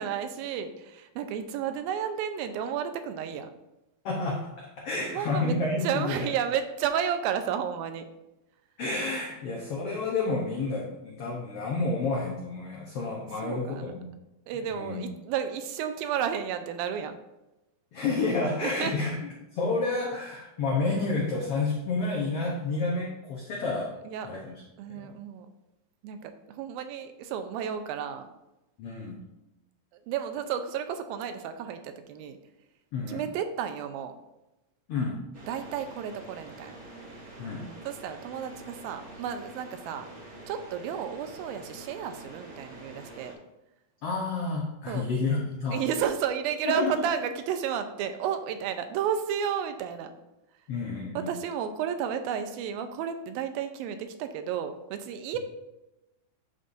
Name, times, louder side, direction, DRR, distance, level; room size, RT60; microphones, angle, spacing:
voice 1, 0.0-3.5 5.0-5.6 5.8-8.1 13.4-13.9 14.5-17.2 18.6-19.0 24.1-24.3 24.8-25.5 26.0-28.3 30.1-32.4 33.1-34.1 35.5-36.8 37.9-40.1 40.5-43.3 44.9-45.1 45.7-50.1 51.2-55.4, right 8 dB, 85° right, 8 dB, 2.5 m, -32 dB
voice 2, 4.0-6.3 8.8-14.1 14.7-15.1 17.9-19.2 19.5-23.9 24.2-24.6 24.9-25.1 28.8-29.2 32.9-33.2 34.9-35.2 37.4-37.7 44.0-45.8 46.6-47.0 50.7-51.3, left 3 dB, 85° left, -2 dB, 1.3 m, -30 dB
sound 1, 35.3-43.3, right 2 dB, 35° right, 1.7 m, -46 dB
8.8 x 6.8 x 2.6 m, 0.97 s
omnidirectional pair, 4.1 m